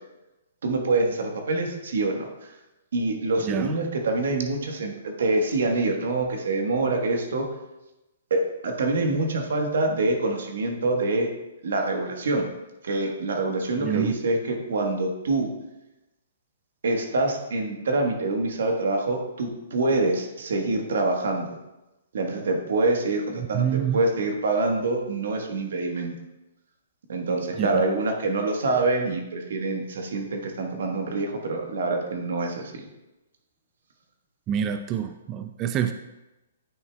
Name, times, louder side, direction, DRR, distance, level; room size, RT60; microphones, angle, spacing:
voice 1, 0.6-2.3 2.9-7.5 8.3-11.3 11.6-12.5 12.8-15.5 16.8-21.6 22.1-23.6 23.9-26.1 27.1-32.8, right 2 dB, 75° right, 3 dB, 1.3 m, -25 dB
voice 2, 13.8-14.1 23.4-24.0 27.6-27.8 34.5-35.9, right 9 dB, 25° right, 8 dB, 0.3 m, -27 dB
9.4 x 5.7 x 2.3 m, 0.99 s
hypercardioid pair, 145°, 0 cm